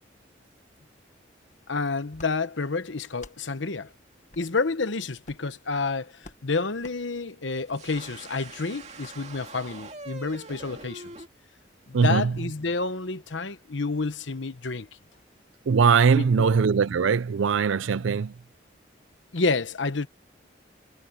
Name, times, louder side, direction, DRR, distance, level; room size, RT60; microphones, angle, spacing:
voice 1, 1.7-3.9 4.4-11.1 11.9-14.9 16.2-16.5 19.3-20.1, left 3 dB, 80° left, 1.1 m, -29 dB
sound 1, 2.1-2.3 3.1-3.4 4.3-4.5 5.2-5.5 6.2-6.4 6.8-7.0 7.9-8.1 9.0-9.2, left 3 dB, 40° left, 1.4 m, -48 dB
sound 2, 7.7-11.3, right 3 dB, 35° right, 2.6 m, -43 dB
voice 2, 11.9-12.3 15.7-18.3, right 5 dB, 90° right, 0.5 m, -21 dB
head